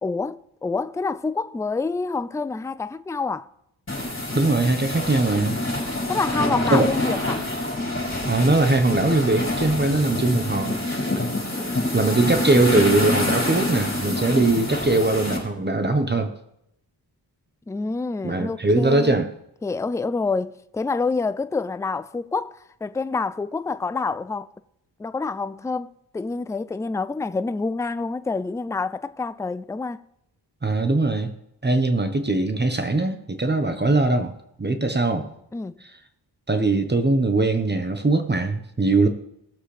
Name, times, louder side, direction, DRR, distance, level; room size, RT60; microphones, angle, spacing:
voice 1, 0.0-3.5 6.1-7.4 11.6-12.5 17.7-19.2 19.6-24.5 25.0-30.0 35.5-35.8, left 4 dB, 5° left, 0.4 m, -27 dB
sound 1, 3.9-15.4, left 1 dB, 30° left, 5.0 m, -26 dB
voice 2, 4.3-5.6 6.7-6.9 8.3-10.8 11.9-16.3 18.2-19.3 30.6-31.3 31.6-34.3 34.6-35.3 36.5-39.1, right 2 dB, 25° right, 1.1 m, -21 dB
18.5 x 7.5 x 3.4 m
cardioid pair, 65°, 42 cm